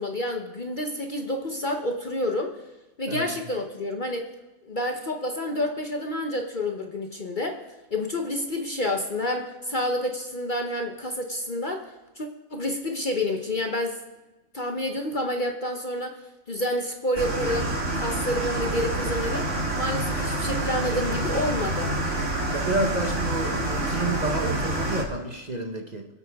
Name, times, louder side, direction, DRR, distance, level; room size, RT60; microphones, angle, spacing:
voice 1, 0.0-2.6 3.0-4.3 4.7-7.6 7.9-14.0 14.5-16.2 16.5-21.9, left 1 dB, 40° left, 4 dB, 1.0 m, -29 dB
sound 1, 17.2-25.0, right 1 dB, 55° right, 2.4 m, -27 dB
voice 2, 22.5-26.1, right 2 dB, 30° right, 3 dB, 1.1 m, -30 dB
25.0 x 8.4 x 3.6 m, 1.1 s
omnidirectional pair, 1.5 m